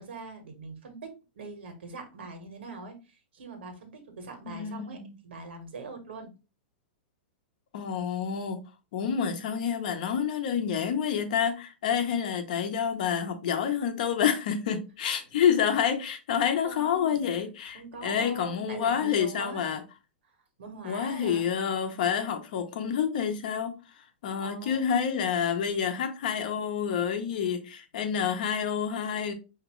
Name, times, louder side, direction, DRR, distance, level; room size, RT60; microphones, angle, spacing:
voice 1, 0.0-6.3 16.6-17.2 17.6-19.8 20.3-21.5 24.4-24.9, right 3 dB, 90° right, 1.4 m, -43 dB
voice 2, 4.5-5.1 7.7-8.6 8.9-19.8 20.8-23.8 24.2-29.3, left 8 dB, 50° left, 0.7 m, -28 dB
4.9 x 2.9 x 3.0 m
supercardioid pair, 180°, 6 cm